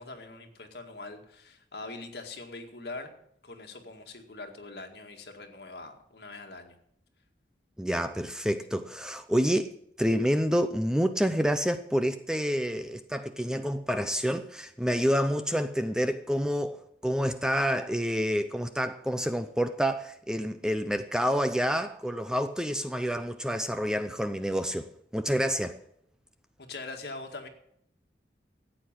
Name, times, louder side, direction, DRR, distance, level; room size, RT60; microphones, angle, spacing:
voice 1, 0.0-3.1 3.4-6.8 26.6-27.5, left 3 dB, 65° left, 2.0 m, -42 dB
voice 2, 7.8-9.7 10.0-25.8, equal, 5° right, 0.6 m, -28 dB
14.0 x 8.7 x 7.5 m
head